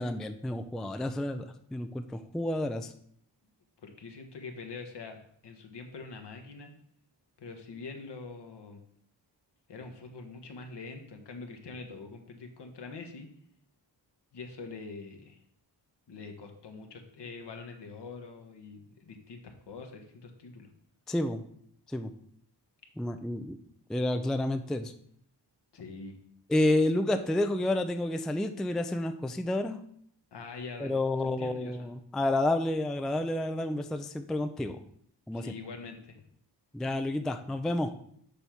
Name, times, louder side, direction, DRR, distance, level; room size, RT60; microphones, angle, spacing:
voice 1, 0.0-2.9 21.1-21.4 21.9-22.1 23.0-23.6 23.9-24.9 26.5-29.8 30.8-34.8 35.3-35.5 36.7-37.9, left 1 dB, ahead, 8 dB, 0.3 m, -30 dB
voice 2, 3.8-6.7 7.4-8.8 9.7-13.3 14.3-15.4 16.1-20.7 25.7-26.2 30.3-31.0 31.2-31.9 35.3-36.2, left 4 dB, 70° left, 5 dB, 1.2 m, -44 dB
6.9 x 3.4 x 5.8 m, 0.65 s
wide cardioid pair, 90°, 43 cm